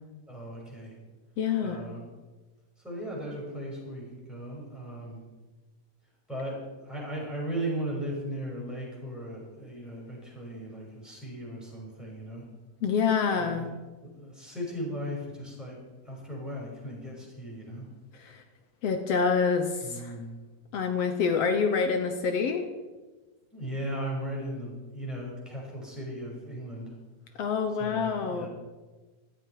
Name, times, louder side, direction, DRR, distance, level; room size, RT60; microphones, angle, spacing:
voice 1, 0.3-0.9 1.6-2.1 2.8-5.2 6.3-12.5 13.4-13.7 14.2-15.8 16.0-17.9 19.8-20.4 23.5-26.9 27.3-27.4 27.8-28.5, right 1 dB, ahead, -3 dB, 5.8 m, -37 dB
voice 2, 1.4-1.9 12.8-13.7 18.2-18.4 18.8-20.1 20.7-22.7 27.4-28.5, left 5 dB, 75° left, 7 dB, 1.4 m, -27 dB
15.5 x 13.0 x 4.9 m, 1.2 s
omnidirectional pair, 4.1 m